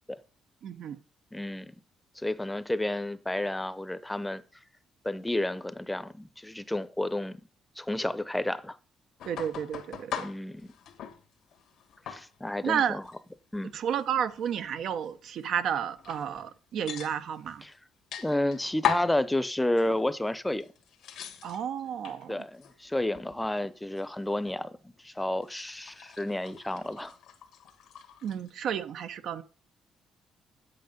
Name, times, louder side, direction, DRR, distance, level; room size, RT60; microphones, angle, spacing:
voice 1, 0.6-1.0 9.2-10.3 12.6-13.0 13.7-17.6 21.4-22.4 28.2-29.4, right 8 dB, 70° right, 0.8 m, -31 dB
voice 2, 1.3-1.7 2.2-4.4 5.0-7.4 7.8-8.8 10.2-10.7 12.1-13.0 13.5-13.7 17.6-17.7 18.2-20.7 22.3-27.1, left 1 dB, 10° left, 0.7 m, -31 dB
sound 1, 9.2-11.2 11.5-12.7 13.0-13.2 13.7-14.9 15.4-15.5 16.0-16.5 16.9-17.6 18.1-19.2 19.8-20.2 20.6-22.3 22.6-23.5 23.7-24.6 25.4-28.5, left 9 dB, 80° left, 1.6 m, -39 dB
8.3 x 8.0 x 5.2 m
cardioid pair, 90°, 0 cm